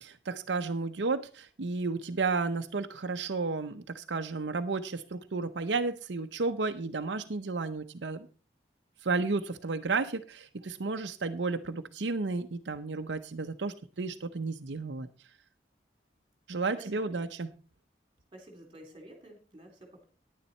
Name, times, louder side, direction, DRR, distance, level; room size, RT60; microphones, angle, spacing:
voice 1, 0.0-8.3 9.0-15.1 16.5-17.5, right 3 dB, 85° right, 7 dB, 0.7 m, -32 dB
voice 2, 16.8-17.3 18.3-20.0, right 1 dB, 30° right, 4 dB, 3.3 m, -51 dB
10.5 x 9.9 x 4.3 m, 0.35 s
head